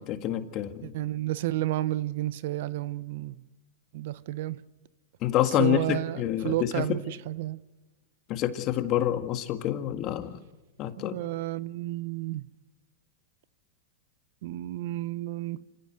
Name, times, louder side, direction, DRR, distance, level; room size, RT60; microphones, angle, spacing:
voice 1, 0.0-0.9 5.2-6.9 8.3-10.4 10.8-11.2, left 12 dB, 40° left, 1.8 m, -27 dB
voice 2, 0.8-3.4 3.9-4.6 5.6-7.6 11.0-12.5 14.4-15.7, right 16 dB, 65° right, 0.9 m, -31 dB
28.0 x 16.0 x 8.0 m
hypercardioid pair, 130°, 0 cm